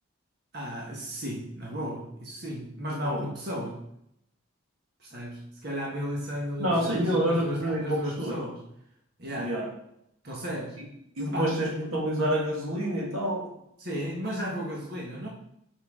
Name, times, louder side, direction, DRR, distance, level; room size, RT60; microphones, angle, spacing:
voice 1, 0.5-3.8 5.0-8.6 9.2-9.6 10.2-10.8 11.3-11.6 13.8-15.3, equal, 50° right, -4 dB, 1.4 m, -34 dB
voice 2, 6.6-8.4 9.4-9.7 11.2-13.5, equal, 85° right, -1 dB, 1.8 m, -28 dB
6.9 x 5.7 x 3.7 m, 0.77 s
head